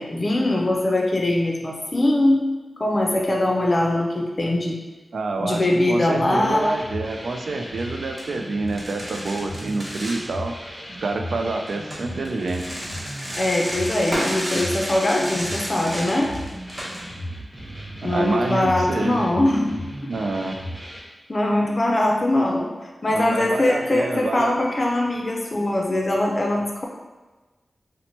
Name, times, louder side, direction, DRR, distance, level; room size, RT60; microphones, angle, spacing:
voice 1, 0.0-2.4 2.8-4.8 5.4-6.7 13.4-16.3 18.0-19.8 21.3-26.9, left 1 dB, 40° left, 0 dB, 0.5 m, -22 dB
voice 2, 5.1-12.7 18.0-19.3 20.0-20.6 23.1-24.5, right 3 dB, 80° right, 4 dB, 0.3 m, -27 dB
sound 1, 6.2-21.0, equal, 10° right, 0.9 m, -36 dB
sound 2, 7.7-7.8 8.2-8.3 8.7-10.2 11.7-17.0, equal, 40° right, 0.9 m, -32 dB
2.9 x 2.1 x 4.1 m, 1.2 s
wide cardioid pair, 85°, 0 cm